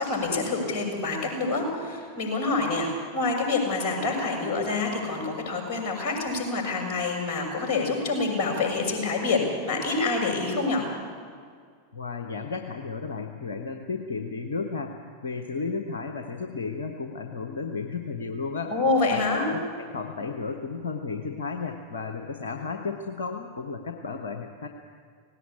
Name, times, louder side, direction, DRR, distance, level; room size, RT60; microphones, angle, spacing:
voice 1, 0.0-2.9 3.1-10.8 18.7-19.4, left 3 dB, 35° left, 1 dB, 6.6 m, -27 dB
voice 2, 11.9-14.9 15.2-18.8 19.1-24.7, left 4 dB, 65° left, 5 dB, 1.2 m, -33 dB
18.5 x 17.5 x 8.7 m, 2.1 s
figure-of-eight pair, 90°, 0 cm